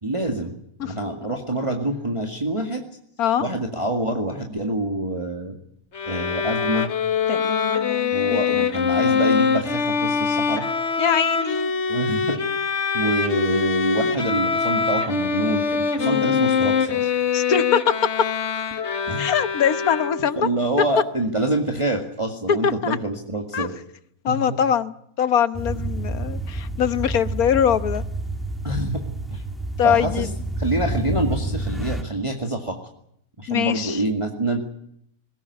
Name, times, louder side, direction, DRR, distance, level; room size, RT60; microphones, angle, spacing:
voice 1, 0.0-2.8 3.4-5.6 6.1-6.9 8.1-10.6 11.9-12.4 12.9-17.1 19.1-19.3 20.4-23.8 24.3-24.6 25.8-25.9 28.6-29.4 29.8-30.3 30.6-32.8 33.4-34.6, right 1 dB, 20° right, 2 dB, 2.1 m, -26 dB
Bowed string instrument, 5.9-20.5, left 6 dB, 50° left, 1.6 m, -23 dB
voice 2, 7.3-8.7 11.0-11.7 16.0-16.4 17.3-17.8 19.2-20.5 22.5-23.0 23.5-23.7 24.2-28.0 29.8-30.3 33.5-34.0, left 8 dB, 80° left, 13 dB, 1.6 m, -23 dB
sound 1, 25.5-32.0, right 1 dB, ahead, 2.4 m, -28 dB
21.0 x 18.0 x 9.7 m, 0.70 s
omnidirectional pair, 1.5 m